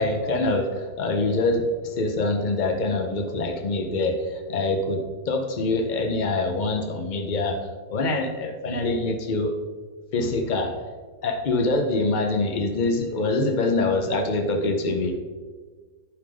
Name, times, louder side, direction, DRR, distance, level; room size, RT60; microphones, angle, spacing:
voice 1, 0.0-9.6 10.1-10.8 11.2-15.2, left 2 dB, 70° left, 4 dB, 0.4 m, -25 dB
11.0 x 3.9 x 4.9 m, 1.5 s
omnidirectional pair, 1.8 m